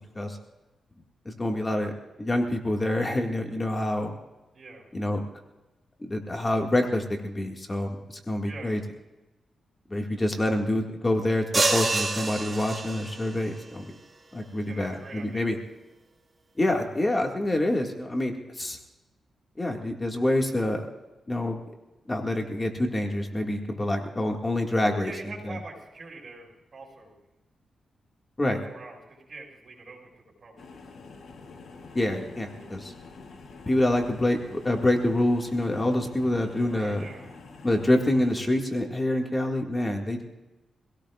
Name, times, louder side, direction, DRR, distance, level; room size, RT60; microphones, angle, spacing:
voice 1, 1.3-4.1 4.9-5.2 6.0-8.8 9.9-11.4 11.7-13.8 14.3-15.6 16.6-18.8 19.6-20.8 21.3-21.6 22.1-25.1 25.4-25.6 28.4-28.6 31.9-32.9 33.7-37.1 37.6-40.2, left 1 dB, 20° left, 2 dB, 2.0 m, -26 dB
voice 2, 4.5-4.9 8.4-8.8 14.6-15.5 25.0-27.1 28.4-30.6 36.7-37.3, right 3 dB, 50° right, 0 dB, 5.8 m, -44 dB
sound 1, 11.5-13.3, right 3 dB, 30° right, 3.0 m, -27 dB
sound 2, 30.6-38.3, left 4 dB, 65° left, 3.4 m, -47 dB
25.5 x 17.0 x 2.5 m, 1.1 s
cardioid pair, 80°, 0 cm